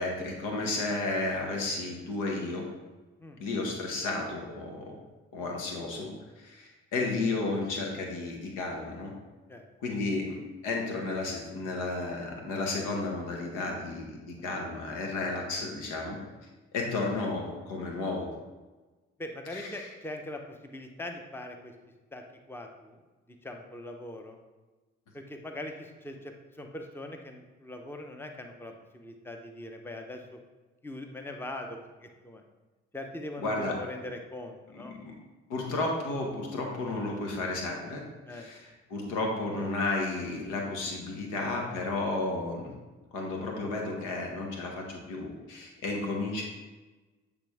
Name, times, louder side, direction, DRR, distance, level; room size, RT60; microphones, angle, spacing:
voice 1, 0.0-2.7 3.4-4.9 5.3-9.1 9.8-16.2 16.7-18.3 19.5-19.9 33.4-33.8 34.9-35.1 35.5-38.0 38.3-42.7 43.1-46.4, left 2 dB, 75° left, 1 dB, 1.1 m, -33 dB
voice 2, 19.2-21.7 22.1-23.0 23.4-24.4 25.1-30.4 30.8-32.4 32.9-35.0 38.2-38.5, left 1 dB, 5° left, 4 dB, 0.8 m, -41 dB
8.0 x 3.4 x 3.5 m, 1.2 s
hypercardioid pair, 45°, 32 cm